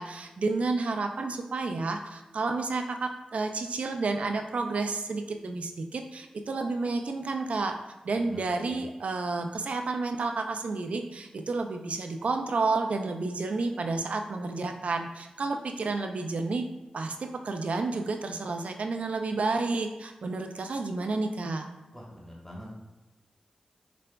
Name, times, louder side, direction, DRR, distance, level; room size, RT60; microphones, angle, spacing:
voice 1, 0.0-7.8 8.0-16.7 16.9-21.7, right 3 dB, 70° right, 5 dB, 0.4 m, -30 dB
voice 2, 21.9-22.7, equal, 10° left, -3 dB, 1.2 m, -45 dB
5.1 x 3.3 x 2.2 m, 1.1 s
cardioid pair, 50°, 2 cm